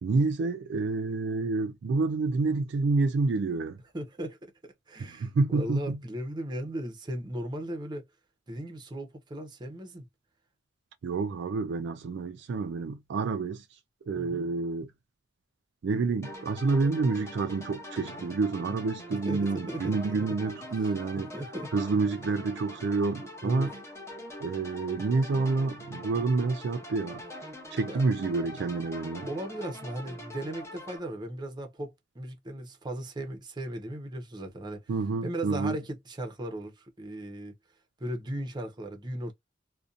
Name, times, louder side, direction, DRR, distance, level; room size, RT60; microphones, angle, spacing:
voice 1, 0.0-3.8 5.0-6.0 11.0-13.6 14.1-14.9 15.8-21.3 21.7-23.7 24.4-27.2 27.7-29.3 34.9-35.8, right 3 dB, 65° right, 0.3 m, -28 dB
voice 2, 3.9-8.0 8.5-10.1 14.1-14.5 19.2-20.4 21.3-21.7 23.4-23.7 27.9-28.0 29.3-34.8 35.2-37.5 38.0-39.3, right 1 dB, 25° right, 0.6 m, -37 dB
sound 1, 16.2-31.0, equal, 15° left, 0.7 m, -43 dB
2.6 x 2.2 x 2.4 m
head